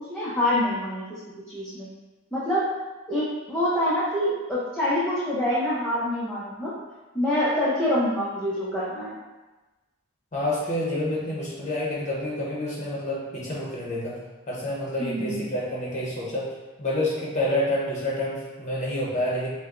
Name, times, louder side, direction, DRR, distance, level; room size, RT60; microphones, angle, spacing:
voice 1, 0.1-1.2 1.5-1.9 2.3-2.7 3.1-6.7 7.1-9.1 15.0-15.5, left 1 dB, 5° left, -11 dB, 0.6 m, -26 dB
voice 2, 10.3-14.2 14.5-16.5 16.8-19.5, left 1 dB, 35° left, -5 dB, 0.9 m, -28 dB
5.6 x 2.2 x 2.5 m, 1.1 s
head